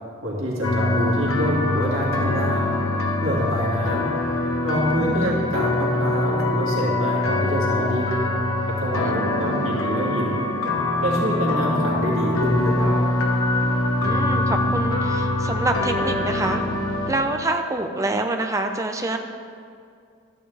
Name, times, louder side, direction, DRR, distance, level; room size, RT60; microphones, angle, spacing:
voice 1, 0.2-2.7 3.2-4.1 4.6-8.3 8.7-10.4 11.0-12.9, equal, 85° right, -4 dB, 2.0 m, -26 dB
sound 1, 0.6-17.1, left 2 dB, 90° left, 1.2 m, -23 dB
voice 2, 14.0-16.6 17.1-19.2, right 2 dB, 15° right, 4 dB, 0.5 m, -26 dB
12.0 x 8.7 x 3.4 m, 2.3 s
head